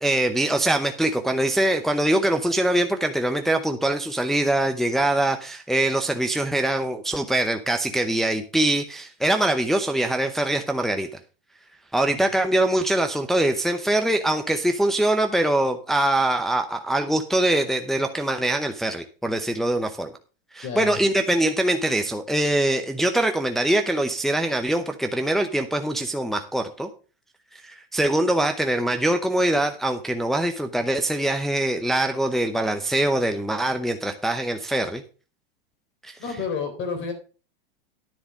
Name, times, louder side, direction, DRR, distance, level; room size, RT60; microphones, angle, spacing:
voice 1, 0.0-11.1 11.9-20.1 20.5-26.9 27.5-35.0 36.0-36.2, right 1 dB, ahead, 5 dB, 0.7 m, -23 dB
voice 2, 20.6-21.0 36.2-37.1, left 5 dB, 40° left, 6 dB, 3.8 m, -30 dB
10.0 x 6.8 x 5.2 m, 0.35 s
supercardioid pair, 125°, 30 cm